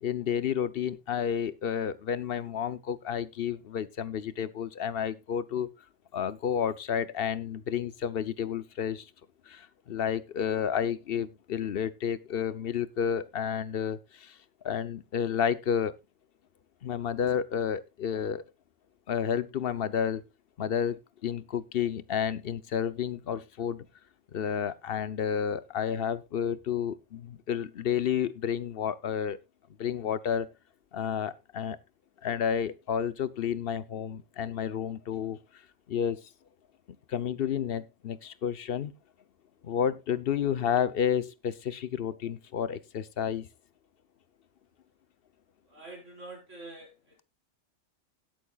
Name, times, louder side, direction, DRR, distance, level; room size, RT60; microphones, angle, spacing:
voice 1, 0.0-5.7 6.1-9.1 9.5-14.4 14.6-16.0 16.8-18.4 19.1-20.2 20.6-23.9 24.3-29.4 29.8-30.5 30.9-31.8 32.2-35.4 35.9-36.2 37.1-38.9 39.6-43.5, left 8 dB, 55° left, 0.9 m, -31 dB
voice 2, 45.7-47.2, right 2 dB, 75° right, 5.0 m, -46 dB
17.0 x 8.6 x 2.4 m
omnidirectional pair, 1.3 m